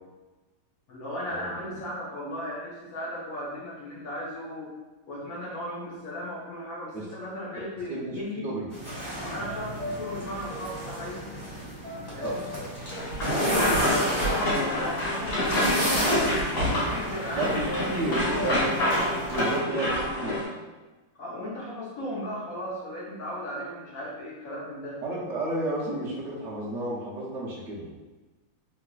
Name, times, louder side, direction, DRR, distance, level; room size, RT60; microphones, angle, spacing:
voice 1, 0.9-4.7 5.1-8.5 9.2-11.2 12.1-12.5 13.3-18.5 21.2-25.0, left 1 dB, 75° left, -6 dB, 0.8 m, -36 dB
voice 2, 7.9-8.7 12.2-12.7 17.3-18.6 19.3-20.4 25.0-27.9, right 1 dB, 70° right, -7 dB, 0.7 m, -32 dB
sound 1, 8.7-19.6, equal, 15° left, 1.0 m, -32 dB
sound 2, 8.8-16.9 17.6-18.6, equal, 15° right, 1.2 m, -40 dB
sound 3, 12.8-20.4, left 1 dB, 55° left, 1.5 m, -27 dB
3.4 x 3.2 x 2.3 m, 1.2 s
omnidirectional pair, 2.3 m